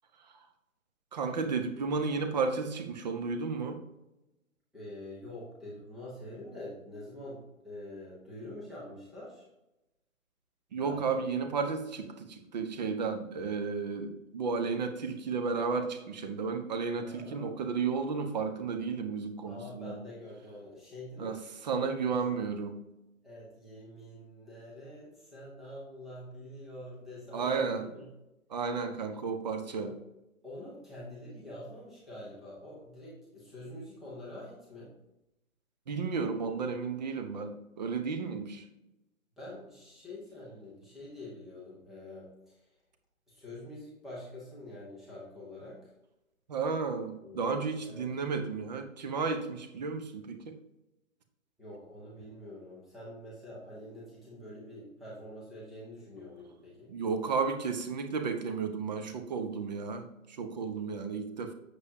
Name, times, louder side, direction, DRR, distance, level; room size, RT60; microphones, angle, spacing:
voice 1, 1.1-3.8 10.7-20.0 21.2-22.8 27.3-27.8 28.5-29.9 35.9-38.6 46.5-50.5 56.9-61.5, right 5 dB, 30° right, 7 dB, 0.8 m, -33 dB
voice 2, 4.7-9.5 10.8-11.2 17.0-17.8 19.5-21.4 23.2-28.1 29.8-30.0 30.4-34.9 39.4-42.7 43.3-45.9 47.2-48.0 51.6-56.9, left 1 dB, ahead, -7 dB, 0.6 m, -46 dB
8.0 x 6.8 x 2.8 m, 0.94 s
figure-of-eight pair, 135°, 41 cm